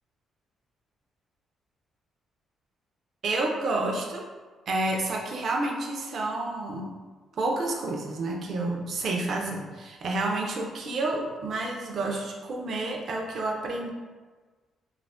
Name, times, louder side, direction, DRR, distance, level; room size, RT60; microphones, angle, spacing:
voice 1, 3.2-4.2 4.7-6.9 7.4-13.9, right 2 dB, 60° right, 0 dB, 0.4 m, -29 dB
2.3 x 2.0 x 3.4 m, 1.4 s
cardioid pair, 90°, 0 cm